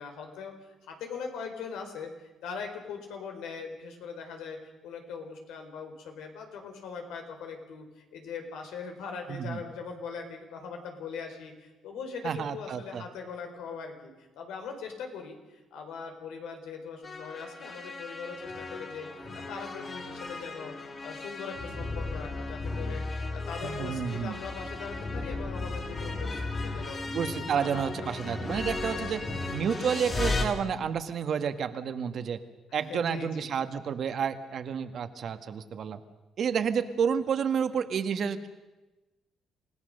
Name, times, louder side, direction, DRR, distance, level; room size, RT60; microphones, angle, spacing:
voice 1, 0.0-2.1 2.4-4.6 4.8-20.7 21.0-27.0 27.3-27.7 28.0-28.5 29.1-29.3 32.7-33.5, left 5 dB, 90° left, 4 dB, 4.3 m, -41 dB
voice 2, 9.3-9.6 12.2-13.0 23.6-24.3 27.1-29.2 29.5-32.4 32.7-36.0 36.4-38.5, right 7 dB, 55° right, 9 dB, 1.5 m, -30 dB
sound 1, 17.0-30.4, left 3 dB, 35° left, 4.0 m, -35 dB
28.0 x 17.0 x 6.6 m, 1.1 s
cardioid pair, 120°, 0 cm